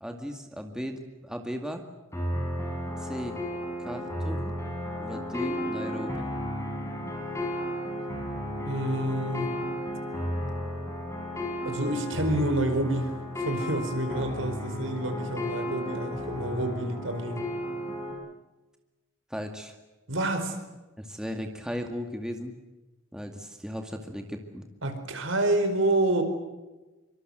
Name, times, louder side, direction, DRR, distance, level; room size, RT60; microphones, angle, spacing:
voice 1, 0.0-1.8 3.0-3.4 3.8-4.5 5.0-6.2 19.3-19.8 21.0-22.6 23.1-24.7, equal, 5° right, 4 dB, 2.2 m, -36 dB
sound 1, 2.1-18.1, equal, 15° left, 6.4 m, -33 dB
voice 2, 8.6-9.6 11.6-17.4 20.1-20.5 24.8-26.2, right 1 dB, 70° right, 7 dB, 4.8 m, -28 dB
25.5 x 25.0 x 8.0 m, 1.1 s
head